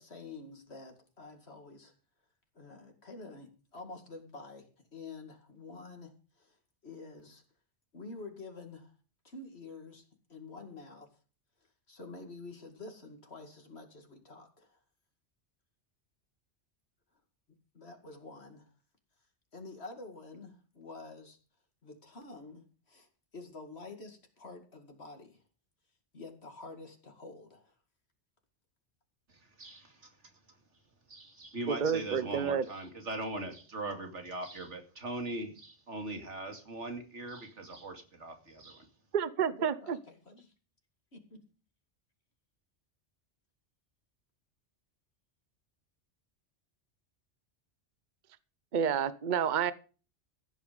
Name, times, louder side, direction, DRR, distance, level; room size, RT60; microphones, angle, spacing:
voice 1, 0.0-1.9 2.5-6.6 6.8-7.4 7.9-8.9 9.2-11.1 11.9-14.8 17.7-18.7 19.5-21.4 21.8-23.1 23.3-25.4 26.1-27.8 39.4-40.5 41.1-41.4, left 3 dB, 60° left, 2.5 m, -48 dB
voice 2, 29.6-30.1 31.1-38.9, right 2 dB, 75° right, 2.7 m, -40 dB
voice 3, 31.7-32.6 39.1-40.0 48.7-49.7, right 7 dB, 45° right, 0.8 m, -29 dB
15.5 x 8.5 x 5.2 m
omnidirectional pair, 1.2 m